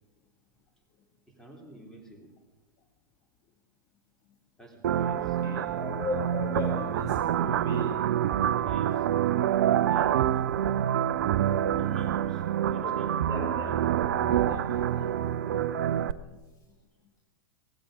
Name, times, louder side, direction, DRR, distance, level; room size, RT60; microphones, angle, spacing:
voice 1, 1.3-2.3 4.6-5.4 8.5-9.1 9.8-10.4 11.8-13.1, right 1 dB, 5° left, 0 dB, 3.6 m, -48 dB
sound 1, 4.8-16.1, right 10 dB, 55° right, 0.6 m, -27 dB
voice 2, 5.2-8.1 12.8-12.9 13.3-13.8 14.2-15.2 15.5-15.7, left 4 dB, 30° left, 3 dB, 1.5 m, -38 dB
17.0 x 15.5 x 5.1 m, 1.2 s
figure-of-eight pair, 95°, 11 cm